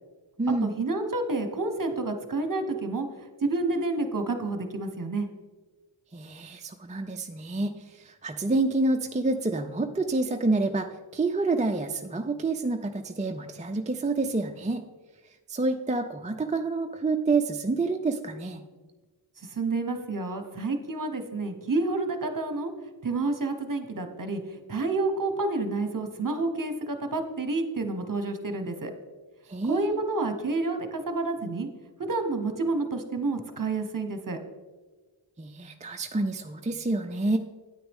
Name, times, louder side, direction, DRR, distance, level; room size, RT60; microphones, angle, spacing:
voice 1, 0.6-3.1 3.4-5.3 19.4-22.7 23.0-24.4 24.7-28.9 29.7-31.7 32.1-34.4, right 3 dB, 40° right, 7 dB, 1.0 m, -29 dB
voice 2, 6.1-14.8 15.5-18.6 29.5-30.0 35.4-37.4, right 3 dB, 15° right, 5 dB, 0.4 m, -28 dB
9.3 x 8.9 x 3.6 m, 1.3 s
wide cardioid pair, 65°, 48 cm